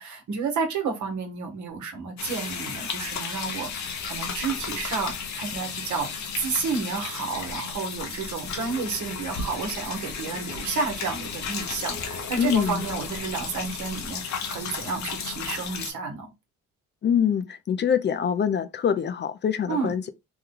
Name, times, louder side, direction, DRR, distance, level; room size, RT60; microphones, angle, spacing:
voice 1, 0.0-16.3 19.7-19.9, right 5 dB, 75° right, 1.1 m, -31 dB
sound 1, 2.2-15.9, left 6 dB, 65° left, 0.8 m, -34 dB
voice 2, 12.4-12.8 17.0-20.1, left 8 dB, 35° left, 0.4 m, -24 dB
3.1 x 2.2 x 3.7 m
cardioid pair, 90°, 30 cm